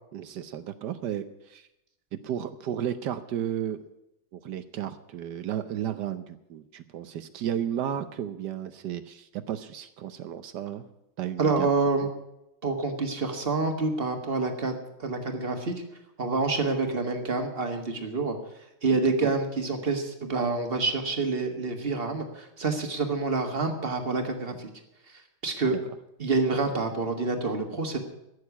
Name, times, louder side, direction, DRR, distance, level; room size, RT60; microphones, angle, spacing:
voice 1, 0.1-1.7 2.2-3.8 4.3-10.9 11.2-11.7 18.9-19.3 25.7-25.8, right 10 dB, 65° right, 12 dB, 1.1 m, -33 dB
voice 2, 11.4-12.1 12.6-14.7 15.0-15.7 16.2-18.4 18.8-24.7 25.4-25.7 26.2-28.0, right 3 dB, 30° right, 5 dB, 1.6 m, -27 dB
14.0 x 6.7 x 9.7 m, 0.87 s
omnidirectional pair, 2.2 m